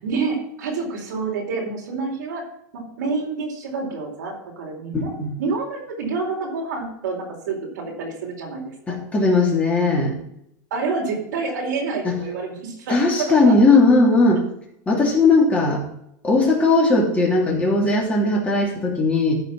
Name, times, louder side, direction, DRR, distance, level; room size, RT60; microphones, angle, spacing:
voice 1, 0.0-2.5 2.7-9.0 10.7-13.8, right 4 dB, 85° right, 0 dB, 4.4 m, -28 dB
voice 2, 4.9-5.3 8.9-10.1 12.0-12.2 12.9-14.4 14.9-15.8 16.2-19.3, left 3 dB, 15° left, -2 dB, 3.0 m, -18 dB
13.5 x 5.2 x 6.2 m, 0.77 s
supercardioid pair, 140°, 9 cm